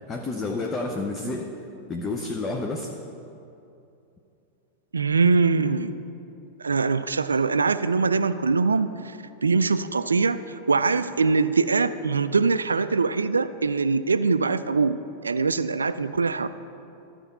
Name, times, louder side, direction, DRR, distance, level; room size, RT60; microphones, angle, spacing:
voice 1, 0.1-1.5 1.9-2.9, left 3 dB, 20° left, 2 dB, 0.6 m, -29 dB
voice 2, 4.9-6.1 6.6-10.4 10.7-16.5, right 4 dB, 75° right, 13 dB, 0.3 m, -23 dB
13.0 x 4.5 x 5.5 m, 2.7 s
figure-of-eight pair, 90°, 0 cm